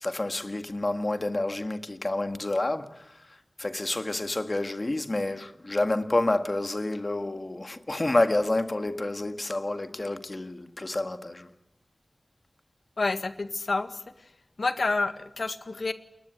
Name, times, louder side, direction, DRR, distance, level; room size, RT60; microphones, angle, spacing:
voice 1, 0.0-3.2 3.6-11.5, left 2 dB, 40° left, 1.9 m, -29 dB
voice 2, 13.0-14.0 14.6-15.9, left 3 dB, 75° left, 1.7 m, -28 dB
30.0 x 21.0 x 8.0 m
wide cardioid pair, 75°, 0 cm